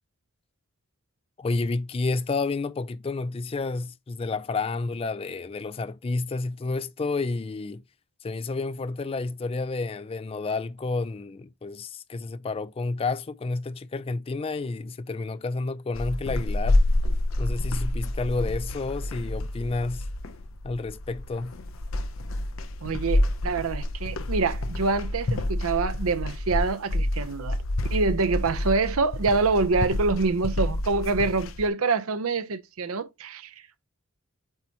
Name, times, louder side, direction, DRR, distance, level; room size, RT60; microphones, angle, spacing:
voice 1, 1.4-7.8 8.2-16.8 17.4-20.1 20.6-21.5, left 3 dB, 25° left, 0.3 m, -30 dB
sound 1, 15.9-31.7, left 1 dB, 65° left, 0.6 m, -28 dB
voice 2, 22.8-27.6 27.9-33.5, right 4 dB, 80° right, 0.7 m, -26 dB
8.0 x 2.9 x 4.5 m
head